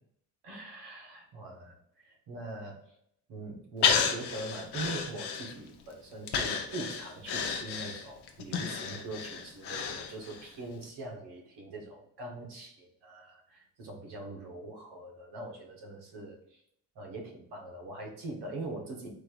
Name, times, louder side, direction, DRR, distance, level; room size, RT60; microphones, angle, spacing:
voice 1, 0.4-2.8 3.3-16.6 16.9-19.1, right 2 dB, 90° right, 1 dB, 1.4 m, -42 dB
Breathing, 3.8-5.8 6.3-10.5 10.8-10.9, left 6 dB, 90° left, 0.8 m, -32 dB
4.4 x 2.6 x 4.5 m, 0.72 s
cardioid pair, 180°, 39 cm